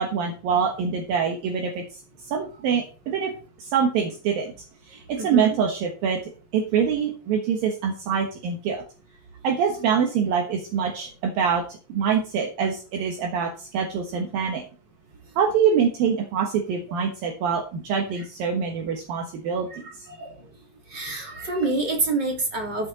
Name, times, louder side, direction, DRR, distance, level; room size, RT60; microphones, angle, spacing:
voice 1, 0.0-1.8 2.3-3.3 3.6-4.5 4.9-6.2 6.5-8.8 9.4-11.6 11.9-14.6 15.4-19.8, right 7 dB, 70° right, 1 dB, 3.0 m, -24 dB
voice 2, 5.2-5.6 19.7-20.4 20.9-22.9, right 2 dB, 30° right, 0 dB, 3.2 m, -27 dB
14.0 x 6.4 x 4.2 m, 0.36 s
omnidirectional pair, 4.6 m